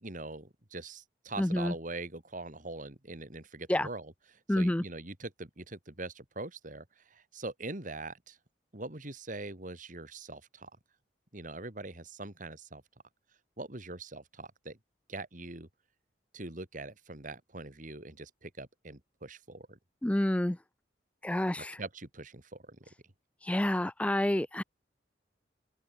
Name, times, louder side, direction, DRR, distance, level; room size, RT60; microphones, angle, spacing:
voice 1, 0.0-4.1 4.5-8.4 8.7-10.7 11.3-12.8 13.6-14.8 15.1-15.7 16.3-19.8 21.6-22.8, right 2 dB, 45° right, 2.9 m, -42 dB
voice 2, 1.4-1.7 3.7-3.9 4.5-4.8 20.0-20.6 21.2-21.8 23.4-24.6, left 1 dB, 5° left, 0.4 m, -28 dB
open air
head